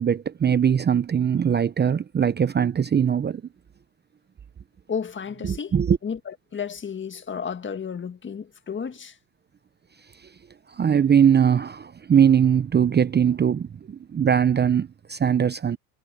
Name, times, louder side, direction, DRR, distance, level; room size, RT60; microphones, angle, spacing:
voice 1, 0.0-3.4 5.4-6.0 10.7-15.8, right 8 dB, 20° right, 0.8 m, -21 dB
voice 2, 4.9-5.7 6.0-9.2, left 6 dB, 25° left, 1.7 m, -32 dB
supercardioid pair, 90°, 45 cm